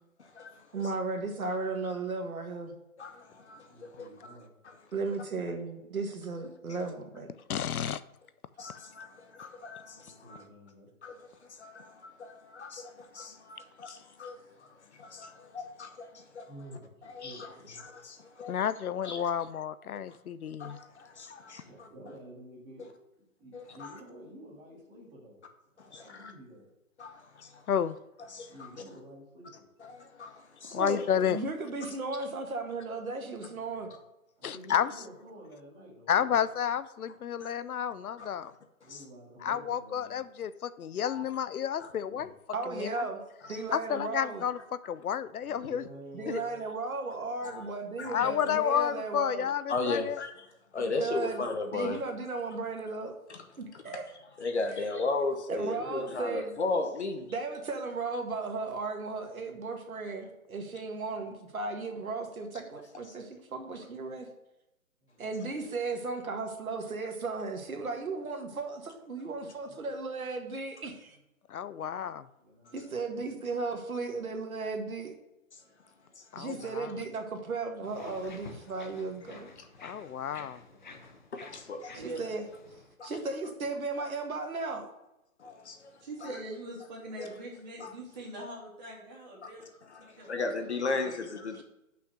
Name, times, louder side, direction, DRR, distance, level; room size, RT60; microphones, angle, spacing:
voice 1, 0.2-0.6 3.0-4.3 4.6-4.8 8.6-10.4 11.0-11.1 11.4-16.5 17.1-18.6 19.0-19.3 20.1-20.2 20.6-21.9 23.5-24.0 25.8-26.3 27.0-27.7 28.2-28.5 29.8-30.8 37.4-37.5 38.2-38.5 38.9-39.0 41.0-41.2 41.8-41.9 42.7-42.8 43.4-43.6 47.5-47.7 48.0-48.3 49.7-50.5 50.7-52.0 53.3-53.4 53.9-54.0 54.4-57.3 72.7-72.8 75.5-75.6 76.2-76.3 76.6-76.7 79.8-80.0 81.3-82.0 83.0-83.1 85.4-86.4 87.2-87.3 87.8-87.9 89.8-91.6, left 3 dB, 50° left, 6 dB, 1.1 m, -37 dB
voice 2, 0.7-2.7 4.9-7.3 30.7-33.9 42.5-43.2 43.5-44.4 46.1-49.5 50.8-51.5 51.7-53.1 53.6-54.1 55.5-56.5 57.3-64.3 65.2-71.2 72.7-75.1 76.4-79.5 81.9-82.4 83.0-84.9 91.6-91.7, right 3 dB, 75° right, 3 dB, 1.9 m, -35 dB
voice 3, 3.3-4.5 9.9-10.9 16.5-17.8 21.6-22.9 23.4-25.4 25.8-26.7 28.5-29.7 33.5-33.9 34.4-36.4 38.8-40.2 42.0-42.3 45.4-46.7 47.4-47.6 47.9-48.6 55.7-56.1 65.0-65.6 69.4-69.8 71.7-73.4 75.6-76.5 80.0-81.0, right 1 dB, 10° right, -6 dB, 1.9 m, -51 dB
voice 4, 7.5-8.0 18.5-20.8 27.7-28.0 30.7-31.4 34.4-34.9 36.1-38.5 39.4-42.3 42.7-43.0 43.7-45.8 46.3-46.4 48.0-50.2 71.5-72.3 76.3-76.9 79.8-80.6, left 9 dB, 80° left, 15 dB, 0.6 m, -31 dB
sound 1, 77.8-82.9, left 3 dB, 35° left, 0.7 m, -50 dB
voice 5, 81.9-82.3 86.0-89.8 90.2-90.3 90.8-91.2, right 1 dB, 30° right, -3 dB, 2.5 m, -42 dB
6.3 x 5.7 x 6.2 m, 0.90 s
hypercardioid pair, 165°, 43 cm